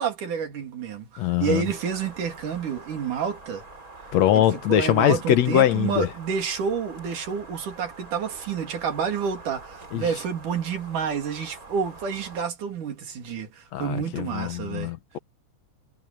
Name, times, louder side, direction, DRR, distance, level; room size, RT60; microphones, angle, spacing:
voice 1, 0.0-3.6 4.3-14.9, right 6 dB, 85° right, 4.3 m, -29 dB
voice 2, 1.2-1.6 4.1-6.1 9.9-10.1 13.7-15.2, left 11 dB, 70° left, 2.0 m, -22 dB
sound 1, 1.6-12.4, right 3 dB, 25° right, 4.5 m, -45 dB
omnidirectional pair, 3.5 m